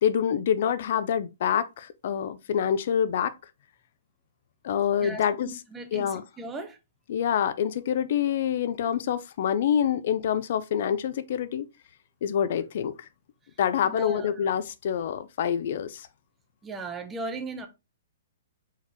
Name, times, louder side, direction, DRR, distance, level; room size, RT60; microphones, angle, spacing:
voice 1, 0.0-3.4 4.6-5.5 5.9-6.2 7.1-11.7 12.2-12.9 13.6-16.1, left 9 dB, 60° left, 0.4 m, -26 dB
voice 2, 5.0-6.8 13.9-14.3 16.6-17.7, right 3 dB, 15° right, 0.7 m, -37 dB
4.4 x 3.8 x 2.9 m
hypercardioid pair, 140°, 0 cm